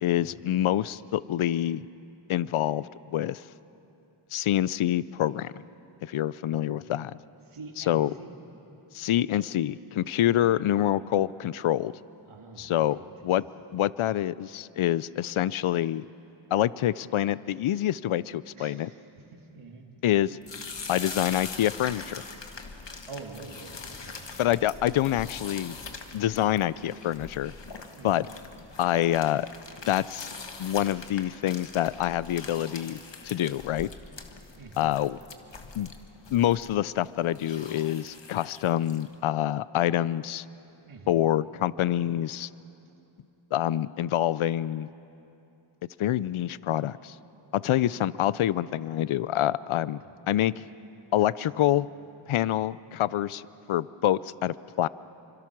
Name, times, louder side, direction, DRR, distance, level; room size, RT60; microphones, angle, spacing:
voice 1, 0.0-1.9 2.3-3.5 4.3-5.5 6.0-7.2 7.8-8.1 8.9-11.9 12.6-13.4 13.7-16.0 16.5-18.9 20.0-20.4 20.9-22.2 24.4-25.7 26.1-27.5 28.0-28.3 28.8-29.5 29.8-30.3 30.6-33.9 34.8-35.2 35.7-35.9 36.3-40.5 41.1-42.5 43.5-44.9 46.0-47.2 47.5-50.0 50.3-50.6 51.1-51.9 52.3-53.4 53.7-54.9, left 12 dB, 80° left, 19 dB, 0.5 m, -26 dB
voice 2, 6.5-7.0 7.5-8.4 12.3-13.2 18.6-19.8 20.8-21.2 23.1-24.5 28.0-28.2 34.6-35.0 40.9-41.2 47.9-48.3 50.0-50.5 51.4-51.5, right 3 dB, 90° right, 2 dB, 2.3 m, -47 dB
sound 1, 20.4-39.1, left 4 dB, 60° left, 1.7 m, -43 dB
27.0 x 25.0 x 6.0 m, 2.8 s
cardioid pair, 50°, 49 cm